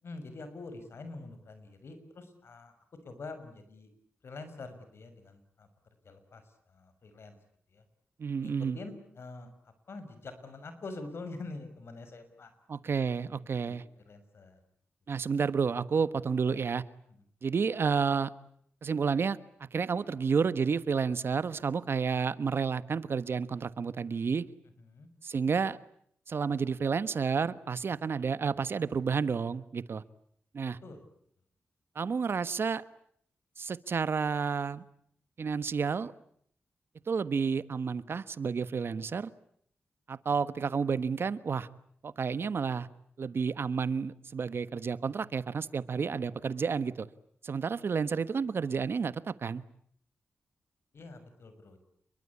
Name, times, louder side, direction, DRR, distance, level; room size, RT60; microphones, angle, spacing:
voice 1, 0.0-2.7 3.0-3.9 4.2-5.7 6.0-7.4 7.7-7.8 8.4-12.5 13.3-13.4 13.6-13.8 14.0-14.6 16.5-16.6 17.1-17.2 24.8-25.1 30.8-31.0 50.9-51.8, left 3 dB, 65° left, 9 dB, 6.4 m, -45 dB
voice 2, 8.2-8.8 12.7-13.8 15.1-16.8 17.4-18.3 18.8-24.4 25.2-25.8 26.3-30.0 30.5-30.8 31.9-32.8 33.6-34.8 35.4-36.1 37.1-39.3 40.1-41.7 42.0-42.9 43.2-47.1 47.4-49.6, right 5 dB, 60° right, 15 dB, 1.3 m, -30 dB
28.5 x 23.0 x 8.5 m, 0.67 s
cardioid pair, 75°, 4 cm